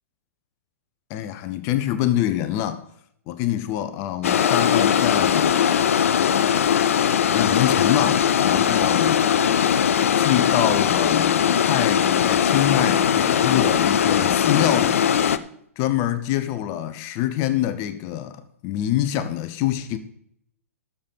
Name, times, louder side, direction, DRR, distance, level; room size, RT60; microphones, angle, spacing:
voice 1, 1.1-2.8 3.3-5.6 7.3-9.2 10.1-15.0 15.8-20.0, left 12 dB, 35° left, 1.0 m, -25 dB
sound 1, 4.2-15.4, left 8 dB, 65° left, 0.6 m, -20 dB
11.5 x 7.1 x 5.5 m
figure-of-eight pair, 110°, 8 cm